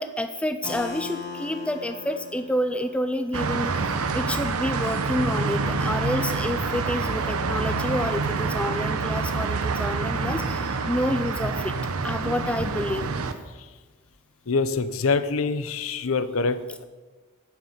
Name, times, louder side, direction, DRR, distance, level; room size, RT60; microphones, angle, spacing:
voice 1, 0.0-3.8 4.1-11.8 12.0-13.1, left 1 dB, 5° left, 9 dB, 0.3 m, -29 dB
Keyboard (musical), 0.6-6.2, left 5 dB, 45° left, 1.6 m, -41 dB
sound 1, 3.3-13.3, right 4 dB, 85° right, 0.8 m, -27 dB
voice 2, 14.5-16.8, left 4 dB, 75° left, 13 dB, 0.6 m, -25 dB
9.4 x 6.1 x 7.3 m, 1.3 s
head